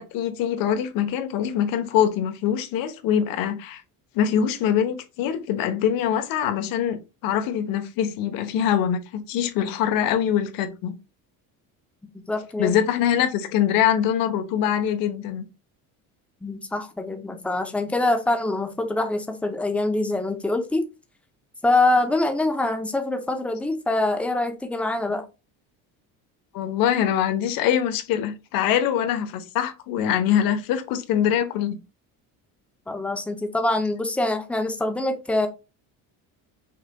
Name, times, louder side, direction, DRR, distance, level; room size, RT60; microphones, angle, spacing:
voice 1, 0.0-3.8 4.1-10.9 12.6-15.4 26.5-31.8, left 9 dB, 70° left, 1.0 m, -23 dB
voice 2, 12.3-12.7 16.4-20.8 21.6-25.3 32.9-35.5, left 2 dB, 5° left, 0.5 m, -24 dB
5.8 x 3.9 x 2.2 m
cardioid pair, 165°, 36 cm